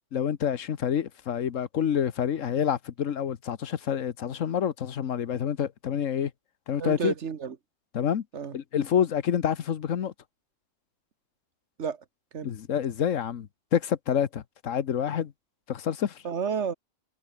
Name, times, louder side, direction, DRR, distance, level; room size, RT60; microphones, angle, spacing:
voice 1, 0.1-6.3 6.7-7.1 7.9-8.2 8.5-10.1 12.4-15.3 15.7-16.2, left 8 dB, 85° left, 1.4 m, -28 dB
voice 2, 6.8-7.6 8.3-8.5 11.8-12.0 12.3-12.5 16.2-16.7, right 6 dB, 65° right, 1.5 m, -31 dB
omnidirectional pair, 1.3 m